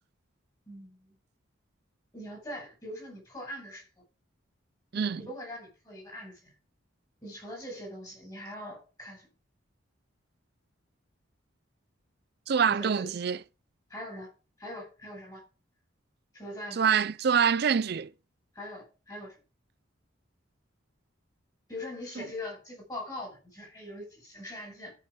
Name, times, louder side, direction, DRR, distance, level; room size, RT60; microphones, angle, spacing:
voice 1, 0.7-1.1 2.1-3.8 4.9-6.5 7.2-9.3 12.7-13.1 13.9-14.3 14.6-15.4 16.3-16.9 18.5-19.3 21.7-24.9, left 1 dB, 20° left, 5.7 m, -42 dB
voice 2, 4.9-5.3 12.5-13.4 16.7-18.1 22.2-22.3, right 7 dB, 50° right, 0.4 m, -25 dB
12.5 x 5.8 x 4.9 m
head